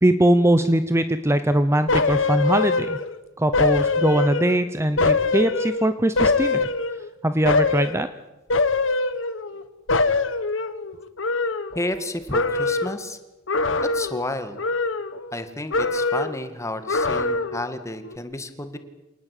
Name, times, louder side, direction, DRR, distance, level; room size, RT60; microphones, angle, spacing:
voice 1, 0.0-3.0 3.4-6.7 7.2-8.1, right 1 dB, 15° right, 10 dB, 0.9 m, -21 dB
sound 1, 1.9-3.2 3.5-4.6 5.0-7.1 7.4-8.0 8.5-9.6 9.9-12.0 12.3-13.0 13.5-14.3 14.6-15.4 15.7-16.4 16.9-17.7 18.0-18.2, left 3 dB, 75° left, 1.4 m, -23 dB
voice 2, 11.7-13.2 13.8-14.6 15.3-18.8, left 1 dB, 15° left, 9 dB, 2.1 m, -31 dB
27.0 x 19.0 x 8.5 m, 1.1 s
head